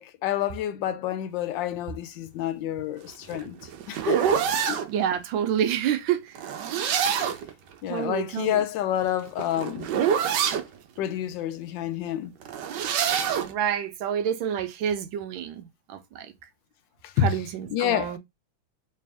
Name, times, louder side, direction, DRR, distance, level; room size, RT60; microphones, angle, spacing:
voice 1, 0.0-3.6 3.9-4.4 4.7-4.8 7.1-7.2 7.8-9.9 11.0-12.3 17.0-17.3 17.7-18.2, left 11 dB, 75° left, 1.3 m, -28 dB
sound 1, 3.1-4.9 6.3-7.5 8.9-10.7 12.4-13.5, right 8 dB, 70° right, 1.3 m, -26 dB
voice 2, 4.9-6.3 7.9-8.6 13.4-16.3 17.2-18.2, right 9 dB, 90° right, 1.5 m, -28 dB
3.4 x 3.3 x 3.4 m
omnidirectional pair, 2.1 m